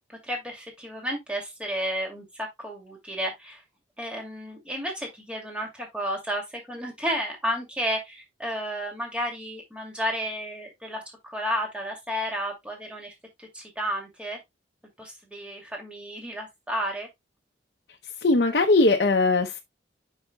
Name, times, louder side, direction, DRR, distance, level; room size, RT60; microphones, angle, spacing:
voice 1, 0.1-3.6 4.0-13.1 13.4-14.4 15.0-17.1, equal, 5° right, 2.4 m, -32 dB
voice 2, 18.2-19.6, left 3 dB, 60° left, 0.7 m, -20 dB
9.3 x 5.6 x 2.2 m
head